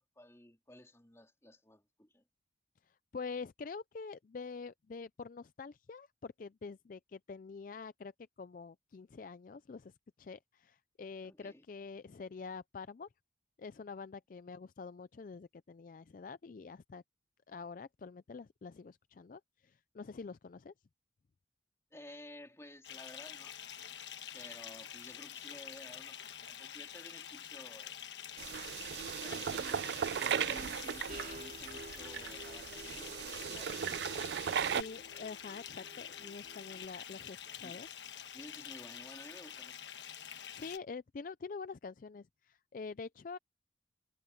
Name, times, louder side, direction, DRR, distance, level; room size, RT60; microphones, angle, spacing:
voice 1, 0.0-2.2 11.2-11.6 21.9-23.6 24.3-28.0 29.0-29.9 30.2-34.2 37.6-37.9 38.3-39.8, left 1 dB, 15° left, 3.6 m, -54 dB
voice 2, 3.1-8.1 8.4-9.9 10.2-13.1 13.6-17.0 17.5-20.7 34.7-37.9 40.5-43.4, left 4 dB, 45° left, 0.4 m, -46 dB
Bathtub (filling or washing) / Fill (with liquid), 22.8-40.8, left 9 dB, 75° left, 1.3 m, -47 dB
sound 1, 28.4-34.8, right 8 dB, 65° right, 0.3 m, -37 dB
sound 2, 31.1-36.8, right 1 dB, 50° right, 4.8 m, -52 dB
head